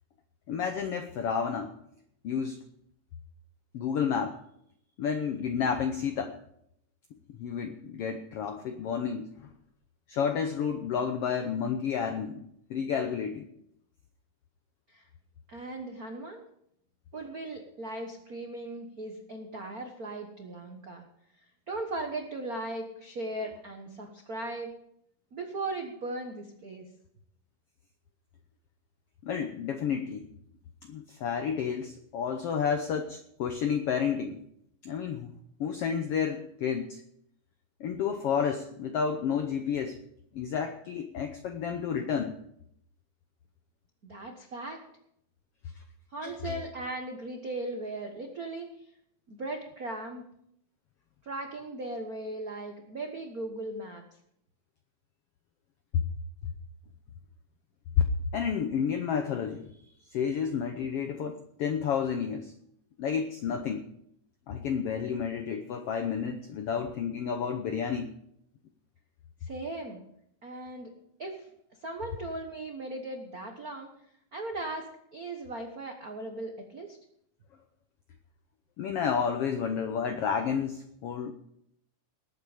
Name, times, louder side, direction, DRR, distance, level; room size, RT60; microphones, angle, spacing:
voice 1, 0.5-1.7 2.2-2.6 3.7-4.4 5.0-6.4 7.3-9.5 10.1-13.5 29.2-30.2 30.9-34.4 34.8-35.3 35.6-37.0 37.8-40.0 40.3-42.4 46.2-46.5 55.9-56.0 58.0-58.1 58.3-59.7 60.1-62.5 63.0-63.8 64.5-68.1 78.8-81.3, left 7 dB, 80° left, 7 dB, 1.3 m, -30 dB
voice 2, 15.5-16.4 17.1-21.1 21.7-24.7 25.3-26.8 44.0-44.8 46.1-48.9 49.3-50.3 51.2-54.0 69.4-70.0 70.4-70.9 71.2-71.5 71.8-73.9 74.3-77.0, right 2 dB, 90° right, 3 dB, 0.8 m, -38 dB
19.0 x 8.5 x 5.1 m, 0.73 s
omnidirectional pair, 3.8 m